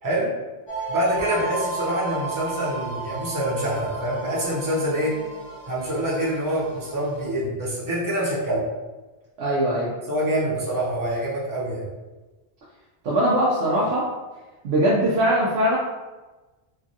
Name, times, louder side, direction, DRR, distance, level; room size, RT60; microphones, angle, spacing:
voice 1, 0.0-0.3 0.9-5.1 5.7-8.6 10.1-11.9, right 1 dB, 20° right, -7 dB, 0.7 m, -25 dB
sound 1, 0.7-7.3, right 4 dB, 65° left, 0.9 m, -33 dB
voice 2, 9.4-9.9 13.0-14.1 14.6-15.8, right 1 dB, 85° right, -6 dB, 0.9 m, -21 dB
3.1 x 2.3 x 2.6 m, 1.2 s
omnidirectional pair, 1.1 m